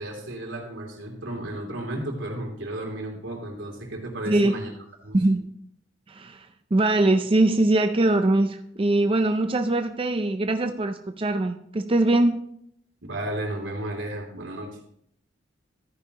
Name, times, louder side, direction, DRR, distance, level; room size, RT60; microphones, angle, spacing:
voice 1, 0.0-4.7 5.0-5.2 13.0-14.8, right 1 dB, 85° right, 1 dB, 3.0 m, -33 dB
voice 2, 5.1-5.5 6.1-12.4, right 2 dB, 30° right, 7 dB, 0.5 m, -22 dB
13.5 x 9.8 x 3.0 m, 0.70 s
head